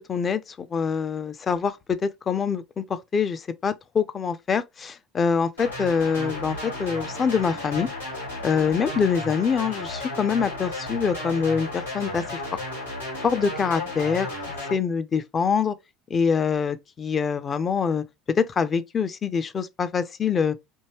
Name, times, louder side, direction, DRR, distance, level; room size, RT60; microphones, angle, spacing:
voice 1, 0.0-1.8 2.0-7.9 8.4-12.2 13.2-14.3 14.7-15.7 16.1-18.0 18.4-20.5, left 6 dB, 30° left, 0.5 m, -25 dB
sound 1, 5.6-14.7, left 1 dB, 90° left, 2.6 m, -33 dB
4.5 x 2.8 x 2.9 m
figure-of-eight pair, 65°, 0 cm